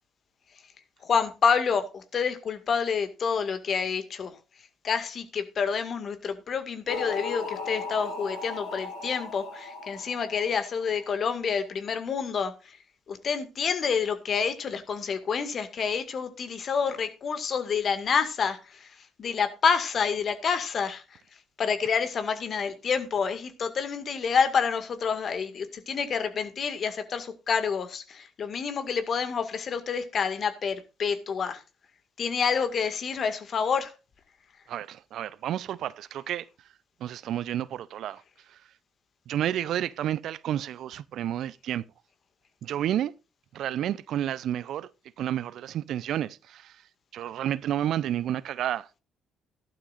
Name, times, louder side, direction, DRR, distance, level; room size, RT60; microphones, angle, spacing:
voice 1, 1.0-4.3 4.8-12.8 13.1-21.2 21.6-31.6 32.2-33.9, left 6 dB, 50° left, 2.0 m, -28 dB
sound 1, 6.9-11.1, left 4 dB, 80° left, 2.9 m, -37 dB
voice 2, 34.7-36.5 37.0-38.6 39.3-41.8 42.6-43.1 43.5-44.9 45.2-46.8 47.1-49.0, right 11 dB, 65° right, 0.5 m, -31 dB
15.0 x 12.0 x 2.5 m
hypercardioid pair, 50°, 0 cm